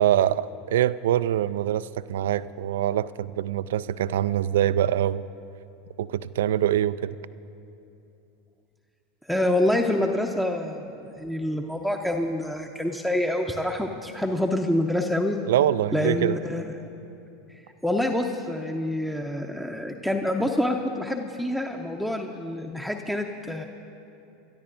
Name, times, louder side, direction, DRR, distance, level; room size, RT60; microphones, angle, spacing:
voice 1, 0.0-5.3 6.0-7.2 15.5-16.4, right 11 dB, 75° right, 16 dB, 0.3 m, -24 dB
voice 2, 9.3-10.9 11.2-15.4 15.9-16.7 17.8-23.7, left 1 dB, ahead, 3 dB, 0.7 m, -26 dB
28.0 x 13.0 x 2.6 m, 2.8 s
hypercardioid pair, 90°, 0 cm